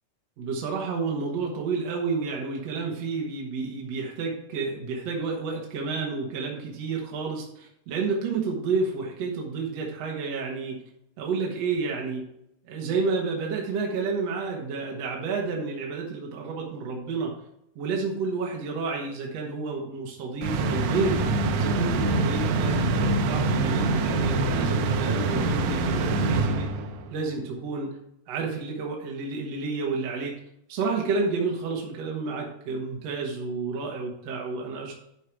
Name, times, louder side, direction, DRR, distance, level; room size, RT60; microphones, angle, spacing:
voice 1, 0.4-10.8 11.2-12.2 12.7-17.3 17.8-21.3 21.5-26.7 27.1-28.0 28.3-30.4 30.7-34.9, right 4 dB, 60° right, -1 dB, 2.4 m, -30 dB
sound 1, 20.4-27.1, right 3 dB, 85° right, 2.3 m, -25 dB
11.0 x 4.7 x 4.6 m, 0.77 s
omnidirectional pair, 3.4 m